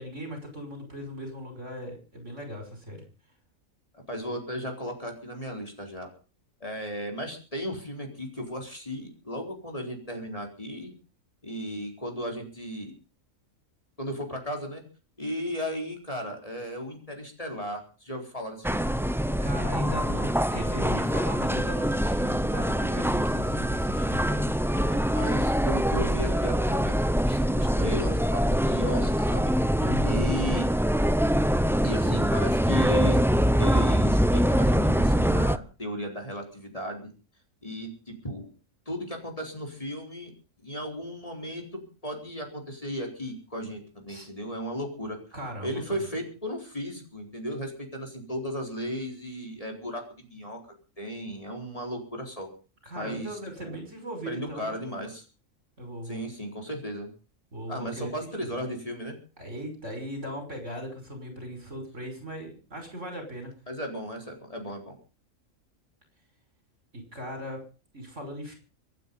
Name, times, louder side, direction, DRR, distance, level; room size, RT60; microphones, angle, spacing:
voice 1, 0.0-3.0 19.4-24.5 29.8-30.2 44.1-44.3 45.3-45.8 52.8-54.8 55.8-56.2 57.5-58.1 58.4-58.5 59.4-63.5 66.9-67.6 67.9-68.5, equal, 60° right, 5 dB, 6.2 m, -38 dB
voice 2, 4.1-6.1 6.6-10.9 11.4-12.9 14.0-14.8 15.2-18.9 24.9-26.9 27.2-29.5 30.0-30.7 31.8-33.2 33.6-37.1 37.6-38.5 38.9-40.3 40.6-45.2 45.6-50.0 50.3-50.6 51.0-52.5 52.9-53.8 54.3-55.2 56.1-57.1 57.7-59.2 63.7-64.9, equal, 25° left, 2 dB, 4.3 m, -35 dB
sound 1, 18.6-35.6, equal, 5° right, 0.4 m, -24 dB
25.5 x 9.4 x 5.4 m, 0.37 s
omnidirectional pair, 1.4 m